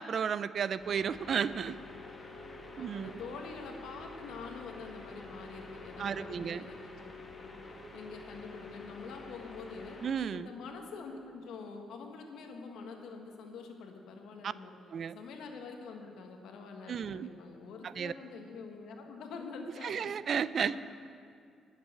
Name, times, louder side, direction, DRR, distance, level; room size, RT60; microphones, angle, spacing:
voice 1, 0.0-1.8 2.8-3.2 6.0-6.7 10.0-10.5 14.4-14.5 14.9-15.2 16.9-17.3 17.8-18.1 19.8-20.8, right 7 dB, 55° right, 16 dB, 0.4 m, -33 dB
sound 1, 0.8-10.1, left 2 dB, 30° left, 1.8 m, -48 dB
voice 2, 2.5-7.1 7.4-7.6 7.9-10.0 10.3-14.7 15.1-20.1 20.6-20.8, left 4 dB, 80° left, 3 dB, 1.6 m, -46 dB
10.5 x 7.4 x 9.2 m, 2.3 s
cardioid pair, 90°, 0 cm